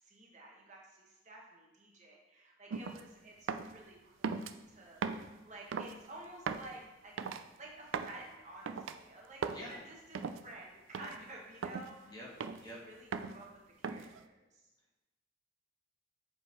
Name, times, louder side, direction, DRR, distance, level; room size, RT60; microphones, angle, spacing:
voice 1, 0.0-12.2 12.4-14.6, right 2 dB, 40° right, -2 dB, 1.1 m, -52 dB
sound 1, 2.7-3.0 3.5-3.8 4.2-4.5 5.0-5.3 5.7-6.0 6.5-6.7 7.2-7.4 7.9-8.2 8.7-9.0 9.4-9.6 10.1-10.4 10.9-11.2 11.6-11.9 12.4-12.7 13.1-13.4 13.8-14.2, right 5 dB, 75° right, 0.4 m, -38 dB
voice 2, 9.5-9.7 12.0-12.3 12.6-12.8, equal, 20° left, -5 dB, 1.6 m, -46 dB
7.8 x 3.7 x 4.4 m, 1.0 s
head